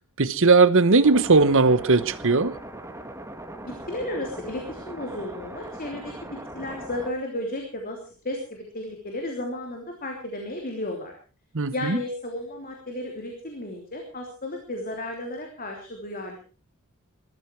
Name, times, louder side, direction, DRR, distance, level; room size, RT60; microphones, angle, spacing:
voice 1, 0.2-2.5 11.5-12.0, right 3 dB, 60° right, 1.2 m, -18 dB
sound 1, 1.0-7.1, right 1 dB, 15° right, 1.9 m, -40 dB
voice 2, 3.6-6.1 6.5-8.0 8.2-11.1 11.7-16.4, left 1 dB, 40° left, 3.4 m, -33 dB
21.0 x 14.0 x 4.7 m
head